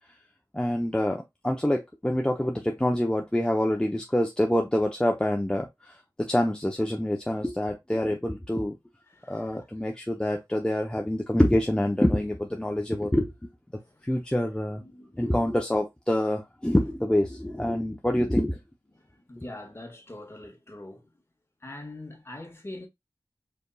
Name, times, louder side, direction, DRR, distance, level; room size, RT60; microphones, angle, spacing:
voice 1, 0.5-5.9 6.3-8.7 9.3-13.3 14.0-14.8 15.2-18.6, left 1 dB, 10° left, 0.7 m, -26 dB
voice 2, 9.1-9.7 13.7-14.1 14.8-15.3 18.9-21.1 21.6-22.9, left 1 dB, 30° left, 1.7 m, -44 dB
5.0 x 4.0 x 2.3 m
wide cardioid pair, 70°, 8 cm